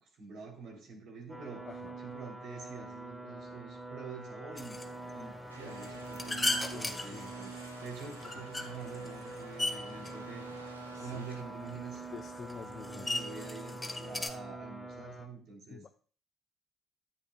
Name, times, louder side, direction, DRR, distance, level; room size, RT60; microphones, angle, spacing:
voice 1, 0.0-1.7 2.0-4.8 5.1-10.7 11.0-12.0 12.9-15.8, right 5 dB, 60° right, 0 dB, 3.0 m, -47 dB
sound 1, 1.3-15.3, right 2 dB, 10° right, 1.5 m, -45 dB
sound 2, 4.6-14.3, left 2 dB, 15° left, 1.6 m, -39 dB
sound 3, 5.5-11.4, right 3 dB, 90° right, 0.8 m, -53 dB
voice 2, 6.7-7.3 10.9-11.2 12.1-13.2 15.7-15.9, left 6 dB, 45° left, 8 dB, 0.6 m, -47 dB
13.5 x 8.4 x 2.3 m, 0.43 s
figure-of-eight pair, 50°, 0 cm